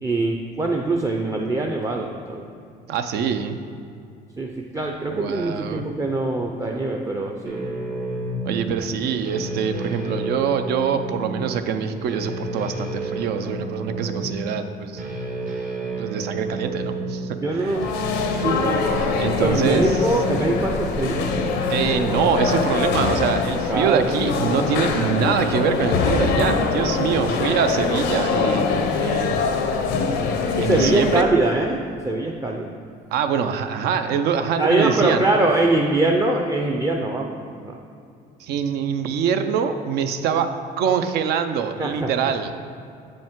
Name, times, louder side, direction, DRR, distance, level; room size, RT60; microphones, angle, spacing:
voice 1, 0.0-2.5 4.4-7.7 17.3-17.9 18.3-18.9 19.4-21.4 23.7-24.1 27.2-27.5 30.6-32.8 34.6-37.8 41.8-42.3, right 2 dB, 20° right, 1 dB, 0.4 m, -23 dB
voice 2, 2.9-3.6 5.1-5.9 8.4-15.0 16.0-17.8 19.2-19.9 21.7-29.8 30.6-31.3 33.1-35.2 38.4-40.5 40.8-42.7, right 7 dB, 75° right, 8 dB, 0.5 m, -24 dB
sound 1, 7.4-26.3, right 2 dB, 55° right, 1.1 m, -31 dB
sound 2, 17.6-31.2, left 5 dB, 90° left, 0.6 m, -23 dB
7.4 x 5.2 x 3.6 m, 2.4 s
cardioid pair, 110°, 17 cm